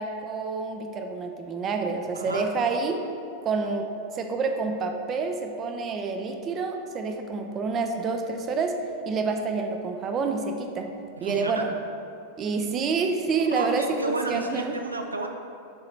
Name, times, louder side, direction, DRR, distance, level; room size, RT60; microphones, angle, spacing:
voice 1, 0.0-3.0 3.4-3.9 4.1-8.8 9.1-10.9 11.2-11.7 12.4-14.8, right 4 dB, 30° right, 5 dB, 0.6 m, -28 dB
voice 2, 2.2-2.5 11.2-11.6 13.6-15.3, right 2 dB, 80° right, 4 dB, 0.4 m, -31 dB
7.1 x 3.8 x 4.4 m, 2.6 s
figure-of-eight pair, 90°, 0 cm